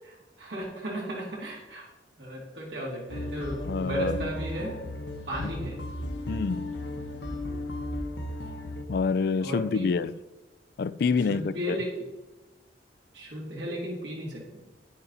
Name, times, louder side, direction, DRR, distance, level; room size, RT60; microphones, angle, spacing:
voice 1, 0.4-1.9 2.2-4.8 5.3-5.8 9.4-9.9 11.3-11.9 13.1-14.4, equal, 80° right, 3.0 m, -34 dB
sound 1, 3.1-8.8, left 1 dB, 75° left, 1.2 m, -35 dB
voice 2, 3.6-4.3 5.4-5.5 6.3-6.8 8.9-10.2 10.8-11.8, left 5 dB, 60° left, 0.4 m, -27 dB
9.4 x 9.4 x 4.2 m
head